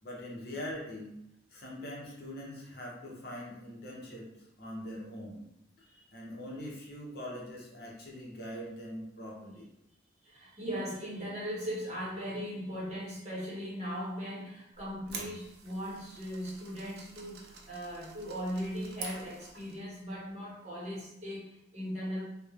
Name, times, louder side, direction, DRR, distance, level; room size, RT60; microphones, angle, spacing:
voice 1, 0.0-1.2 1.5-5.4 6.1-9.7, left 1 dB, 55° left, -3 dB, 0.6 m, -42 dB
voice 2, 10.2-22.2, equal, 35° right, -6 dB, 0.8 m, -38 dB
sound 1, 14.8-19.9, right 4 dB, 55° right, 0.4 m, -47 dB
3.0 x 2.1 x 2.3 m, 0.83 s
head